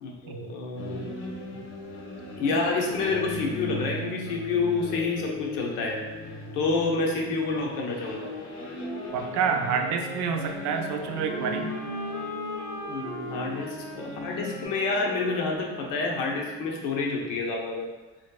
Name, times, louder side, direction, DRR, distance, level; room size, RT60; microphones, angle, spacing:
voice 1, 0.0-1.1 2.4-6.0 6.5-8.3 12.9-17.9, left 3 dB, 80° left, 0 dB, 0.7 m, -28 dB
sound 1, 0.8-14.7, left 2 dB, 40° left, 0.6 m, -38 dB
sound 2, 8.9-16.7, equal, 5° left, 0.9 m, -39 dB
voice 2, 9.1-11.7, right 6 dB, 65° right, 5 dB, 0.4 m, -28 dB
3.0 x 2.7 x 2.2 m, 1.1 s
cardioid pair, 115°, 31 cm